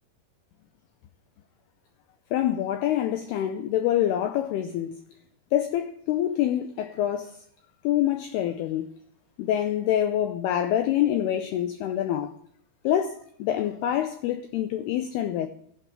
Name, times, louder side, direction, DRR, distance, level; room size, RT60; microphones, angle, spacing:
voice 1, 2.3-4.9 5.5-7.4 7.8-8.9 9.4-12.3 12.8-15.5, left 11 dB, 90° left, 2.2 m, -26 dB
12.0 x 6.1 x 8.5 m
omnidirectional pair, 5.3 m